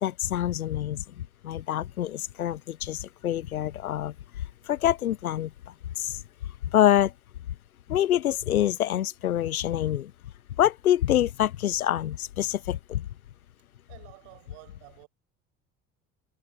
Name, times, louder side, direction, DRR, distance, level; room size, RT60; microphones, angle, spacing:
voice 1, 0.0-1.0 1.4-4.1 4.7-5.5 6.0-6.2 6.7-7.1 7.9-10.1 10.6-13.0, left 11 dB, 90° left, 0.5 m, -26 dB
voice 2, 13.9-15.1, right 35 dB, 65° right, 6.7 m, -51 dB
figure-of-eight pair, 60°, 42 cm